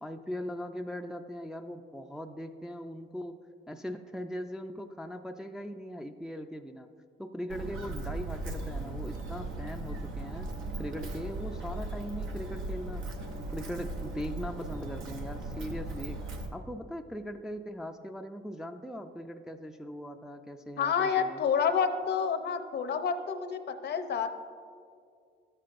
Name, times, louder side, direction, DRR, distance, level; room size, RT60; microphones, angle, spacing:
voice 1, 0.0-3.4 3.7-6.9 7.2-10.5 10.8-13.0 13.4-16.2 16.5-21.5, equal, 5° right, 5 dB, 0.3 m, -40 dB
Walk footsteps, 7.5-16.5, right 2 dB, 90° right, 0.8 m, -37 dB
voice 2, 20.8-24.3, left 6 dB, 55° left, 9 dB, 0.6 m, -29 dB
12.5 x 7.5 x 2.5 m, 2.3 s
cardioid pair, 90°, 20 cm